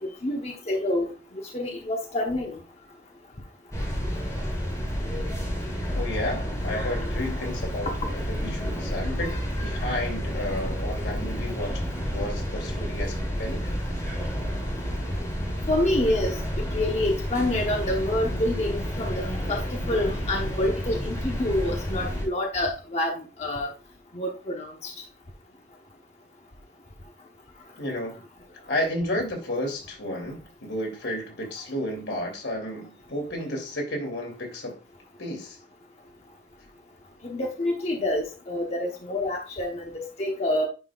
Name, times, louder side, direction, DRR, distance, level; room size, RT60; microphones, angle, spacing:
voice 1, 0.0-2.6 7.8-8.0 15.7-23.7 24.1-24.9 37.2-40.7, left 1 dB, 35° left, 1.1 m, -27 dB
sound 1, 3.7-22.3, equal, 20° left, 3.0 m, -30 dB
voice 2, 5.9-13.7 27.8-28.2 28.7-34.8 35.2-35.6, left 1 dB, 90° left, 3.0 m, -32 dB
9.9 x 5.4 x 2.4 m
head